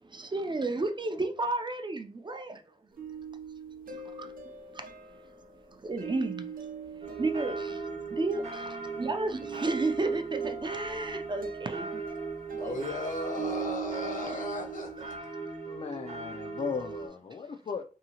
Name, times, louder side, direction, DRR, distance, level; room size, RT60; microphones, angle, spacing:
voice 1, 0.0-2.6 3.9-4.3 4.7-5.2 5.7-12.0 12.6-12.7, right 2 dB, 35° right, 0.4 m, -33 dB
sound 1, 3.0-15.2, right 6 dB, 85° right, 0.5 m, -43 dB
sound 2, 7.0-17.1, right 4 dB, 50° right, 0.9 m, -38 dB
voice 2, 12.6-15.1, left 1 dB, 70° left, 1.0 m, -36 dB
voice 3, 15.7-17.8, left 6 dB, 45° left, 0.4 m, -36 dB
2.8 x 2.7 x 2.8 m
wide cardioid pair, 80°, 14 cm